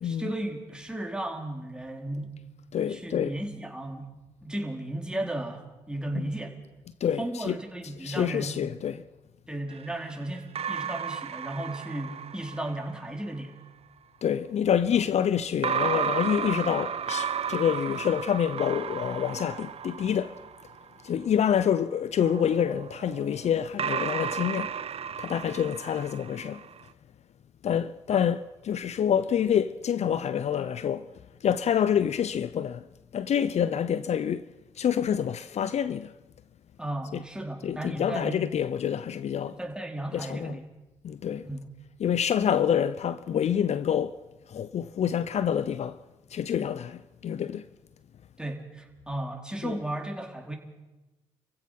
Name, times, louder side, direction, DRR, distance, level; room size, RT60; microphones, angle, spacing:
voice 1, 0.0-2.4 2.9-4.1 4.4-6.6 7.2-8.6 9.5-13.6 14.9-15.0 36.8-38.5 39.5-40.6 41.4-41.7 48.4-50.6, right 1 dB, 5° right, 4.5 m, -35 dB
voice 2, 2.7-3.3 6.2-6.3 7.0-7.6 8.0-9.0 14.2-20.4 21.0-24.7 25.2-26.6 27.6-31.1 31.4-32.9 33.1-34.5 34.8-36.1 37.1-37.2 37.6-39.6 40.1-40.6 41.0-41.5 42.0-44.2 44.5-46.0 46.3-47.7 49.6-49.8, left 8 dB, 55° left, 0.7 m, -27 dB
sound 1, 9.7-13.1 15.6-21.1 22.2-26.8, right 7 dB, 50° right, 0.8 m, -34 dB
29.5 x 16.0 x 6.0 m
hypercardioid pair, 50°, 13 cm